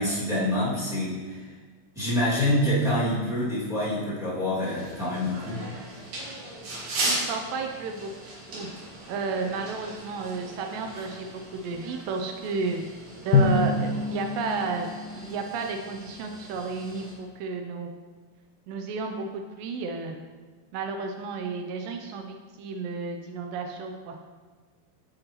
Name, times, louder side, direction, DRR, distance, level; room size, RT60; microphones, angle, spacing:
voice 1, 0.0-1.4 1.9-5.6, left 1 dB, 5° right, -10 dB, 0.3 m, -26 dB
philadelphia cvsbroadst, 4.6-17.1, right 1 dB, 55° right, 2.3 m, -38 dB
voice 2, 7.0-8.1 8.5-8.7 9.1-12.8 13.2-14.9 15.1-17.9 18.7-20.2 20.7-24.2, right 4 dB, 80° right, 4 dB, 2.1 m, -32 dB
Drum, 13.3-16.0, left 4 dB, 75° left, 2.1 m, -26 dB
9.3 x 5.3 x 2.9 m, 1.5 s
omnidirectional pair, 4.2 m